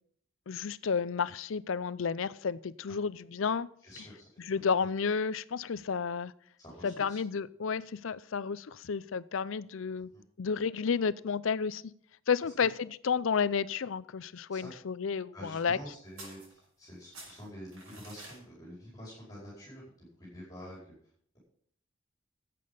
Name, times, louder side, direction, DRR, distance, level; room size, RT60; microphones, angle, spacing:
voice 1, 0.5-3.7 4.5-6.3 6.8-10.1 10.4-11.8 12.3-15.8, left 6 dB, 70° left, 0.5 m, -31 dB
voice 2, 3.8-4.6 6.6-7.2 10.1-10.2 12.6-12.7 14.5-14.7 15.3-20.9, equal, 15° left, 4.7 m, -48 dB
sound 1, 16.2-16.9 17.1-18.4, right 2 dB, 70° right, 5.7 m, -49 dB
12.0 x 8.5 x 5.5 m
head